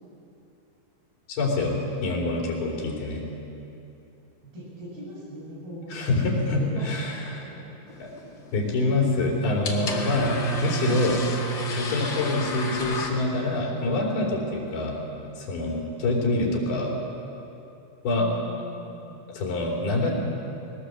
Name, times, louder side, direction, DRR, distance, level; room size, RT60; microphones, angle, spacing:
voice 1, 1.3-3.2 5.9-7.5 8.0-8.1 8.5-11.2 11.7-15.0 15.4-16.9 18.0-18.3 19.3-20.1, left 2 dB, 90° left, -1 dB, 5.5 m, -26 dB
voice 2, 4.4-7.6 18.1-19.2, right 1 dB, 85° right, -6 dB, 9.1 m, -40 dB
sound 1, 7.9-13.1, right 1 dB, 40° left, 1.9 m, -31 dB
21.0 x 19.0 x 7.7 m, 2.8 s
omnidirectional pair, 4.3 m